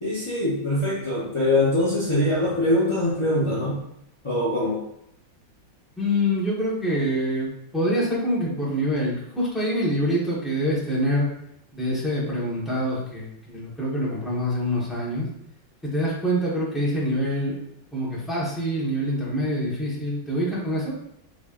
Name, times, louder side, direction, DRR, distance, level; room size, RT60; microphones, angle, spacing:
voice 1, 0.0-3.8 4.2-4.8, left 1 dB, 35° left, -8 dB, 0.4 m, -23 dB
voice 2, 6.0-11.3 11.7-15.3 15.8-17.6 17.9-20.9, equal, ahead, -6 dB, 0.8 m, -25 dB
5.0 x 3.6 x 2.5 m, 0.77 s
omnidirectional pair, 2.2 m